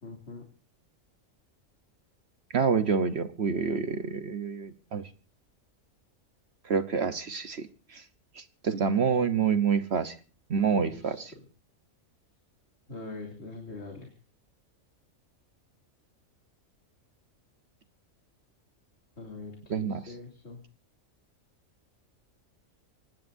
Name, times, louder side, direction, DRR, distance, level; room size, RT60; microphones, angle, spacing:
voice 1, 0.0-0.4 10.9-11.2 12.9-14.1 19.2-20.6, left 3 dB, 50° left, 1 dB, 3.0 m, -43 dB
voice 2, 2.5-5.1 6.6-8.0 8.4-10.1 10.5-11.3 19.7-20.1, right 6 dB, 55° right, 11 dB, 1.1 m, -28 dB
25.5 x 18.5 x 2.6 m, 0.36 s
omnidirectional pair, 1.4 m